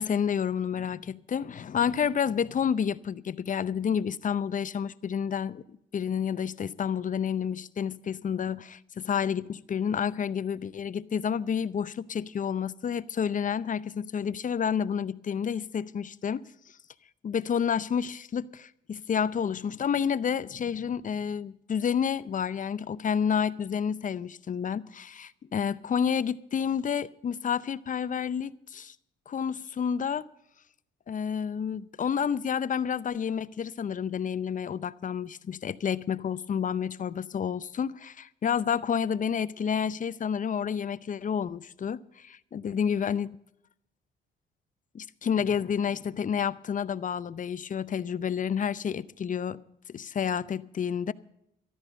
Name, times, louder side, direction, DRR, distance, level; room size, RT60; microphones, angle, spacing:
voice 1, 0.0-16.5 17.2-29.0 29.3-30.3 31.1-43.3 44.9-49.6 49.9-51.1, left 7 dB, 40° left, 0.6 m, -30 dB
13.5 x 12.5 x 5.2 m
cardioid pair, 90°, 20 cm